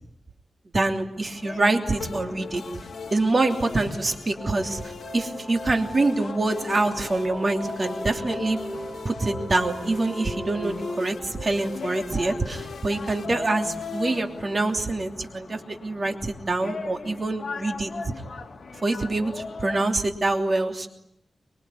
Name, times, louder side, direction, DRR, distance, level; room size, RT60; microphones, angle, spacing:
voice 1, 0.7-2.6 3.1-8.6 9.0-17.9 18.8-20.9, right 2 dB, 40° right, 5 dB, 3.0 m, -25 dB
sound 1, 1.1-19.8, left 4 dB, 60° left, 2.5 m, -40 dB
sound 2, 2.0-15.0, left 5 dB, 80° left, 1.8 m, -41 dB
sound 3, 4.4-11.0, equal, 20° left, 6.7 m, -37 dB
25.0 x 22.5 x 9.8 m, 0.77 s
wide cardioid pair, 115°, 0 cm